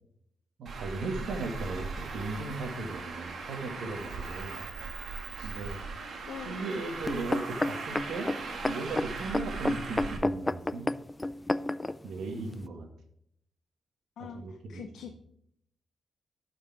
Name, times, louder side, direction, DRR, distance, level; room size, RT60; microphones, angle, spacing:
voice 1, 0.6-4.6 5.4-5.8 6.5-8.3 8.6-10.9 12.0-12.9 14.3-14.8, right 3 dB, 80° right, 4 dB, 1.7 m, -37 dB
Traffic noise roadway noise, 0.7-10.2, right 4 dB, 60° right, 1.7 m, -39 dB
voice 2, 6.3-6.8 14.2-15.1, left 8 dB, 85° left, 5 dB, 0.6 m, -44 dB
sound 1, 7.1-12.0 12.6-12.7, left 2 dB, 15° left, 0.3 m, -30 dB
11.5 x 5.0 x 4.8 m, 0.74 s
cardioid pair, 105°, 0 cm